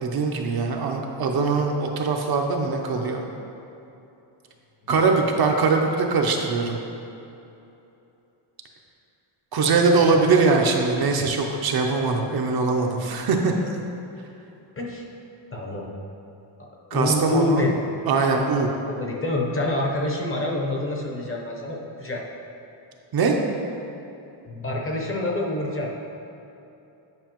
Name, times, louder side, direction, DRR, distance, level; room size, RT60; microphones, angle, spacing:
voice 1, 0.0-3.3 4.9-6.8 9.5-13.5 16.9-17.6 18.1-18.7 23.1-23.4, right 4 dB, 50° right, 2 dB, 0.6 m, -22 dB
voice 2, 15.5-15.9 16.9-17.7 18.9-22.2 24.5-25.9, left 2 dB, 25° left, -1 dB, 0.7 m, -27 dB
9.2 x 5.4 x 2.9 m, 2.9 s
cardioid pair, 160°, 49 cm